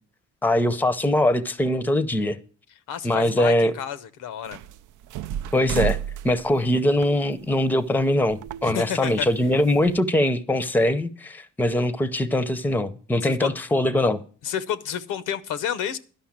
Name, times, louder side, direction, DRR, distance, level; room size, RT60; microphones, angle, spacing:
voice 1, 0.4-2.4 3.0-3.7 5.5-6.0 6.2-14.2, left 1 dB, 5° left, 0.6 m, -22 dB
voice 2, 2.9-4.6 8.6-9.3 13.2-13.5 14.4-16.0, left 9 dB, 85° left, 0.8 m, -30 dB
sound 1, 4.5-8.0 8.3-10.0, right 10 dB, 80° right, 0.5 m, -32 dB
11.5 x 5.6 x 7.3 m
cardioid pair, 100°, 30 cm